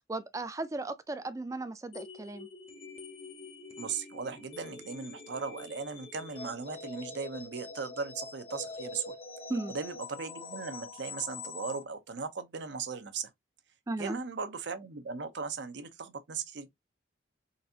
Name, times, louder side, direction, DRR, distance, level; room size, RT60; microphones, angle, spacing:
voice 1, 0.1-2.5 9.5-9.7 13.9-14.2, right 2 dB, 15° right, 0.3 m, -36 dB
sound 1, 1.9-11.8, left 3 dB, 30° left, 0.6 m, -45 dB
voice 2, 3.8-9.1 9.7-13.3 14.0-16.7, right 5 dB, 60° right, 0.6 m, -38 dB
3.9 x 2.5 x 2.6 m
head